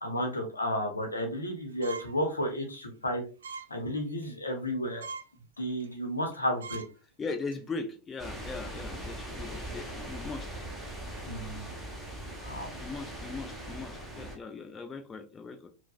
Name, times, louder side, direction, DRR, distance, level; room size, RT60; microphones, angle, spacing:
voice 1, 0.0-3.2 3.7-5.1 5.6-6.8 11.2-11.7 12.4-12.7, equal, 80° left, 0.8 m, -32 dB
sound 1, 1.8-2.2 2.6-2.8 3.4-3.7 4.1-4.3 4.7-4.8 5.0-5.3 5.8-5.9 6.3-6.4 6.6-6.9 7.3-7.5, right 4 dB, 65° right, 0.3 m, -41 dB
voice 2, 7.2-10.5 12.8-15.7, left 4 dB, 20° left, 0.5 m, -39 dB
sound 2, 8.2-14.4, right 1 dB, ahead, 0.8 m, -40 dB
4.6 x 2.1 x 2.2 m
figure-of-eight pair, 90°, 0 cm